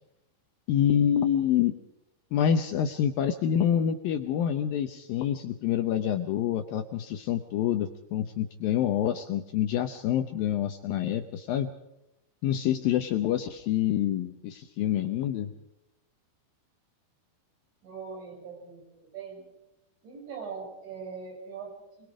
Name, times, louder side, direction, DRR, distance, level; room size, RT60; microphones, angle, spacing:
voice 1, 0.7-1.8 2.3-11.7 12.4-15.5, left 10 dB, 75° left, 7 dB, 2.1 m, -27 dB
voice 2, 17.8-19.5 20.0-21.7, right 5 dB, 80° right, 0 dB, 8.9 m, -41 dB
25.0 x 20.5 x 5.0 m, 0.85 s
omnidirectional pair, 5.2 m